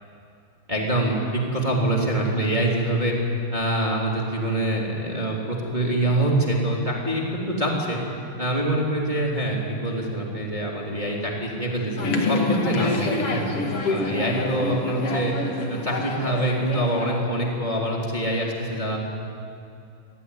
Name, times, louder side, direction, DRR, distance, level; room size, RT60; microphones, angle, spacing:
voice 1, 0.7-3.1 3.5-8.0 8.4-12.4 12.6-13.4 13.9-15.3 15.7-19.0, right 1 dB, 10° right, -2 dB, 2.5 m, -25 dB
sound 1, 12.0-17.2, left 3 dB, 40° left, 2.3 m, -27 dB
26.5 x 18.0 x 9.8 m, 2.5 s
omnidirectional pair, 5.4 m